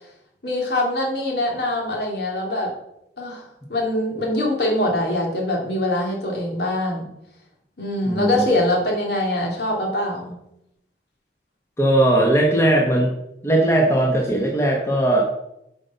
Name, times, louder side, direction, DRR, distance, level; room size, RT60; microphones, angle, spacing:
voice 1, 0.4-2.7 3.2-7.1 7.8-10.3, left 1 dB, 65° left, -1 dB, 2.6 m, -23 dB
voice 2, 8.0-8.4 11.8-13.1 13.4-15.2, right 1 dB, 15° left, 0 dB, 1.1 m, -18 dB
8.2 x 5.3 x 5.6 m, 0.82 s
head